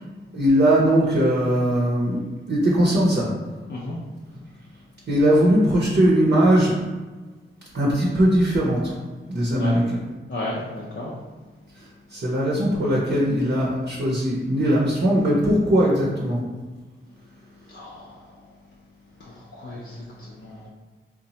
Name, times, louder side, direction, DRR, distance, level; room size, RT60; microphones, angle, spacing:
voice 1, 0.3-3.3 5.1-6.8 7.7-9.0 9.3-10.0 12.1-16.4, equal, 55° right, -5 dB, 0.7 m, -20 dB
voice 2, 10.3-11.1 17.7-18.1 19.2-20.7, left 1 dB, 60° left, -6 dB, 0.5 m, -34 dB
2.9 x 2.1 x 2.8 m, 1.3 s
cardioid pair, 50°, 21 cm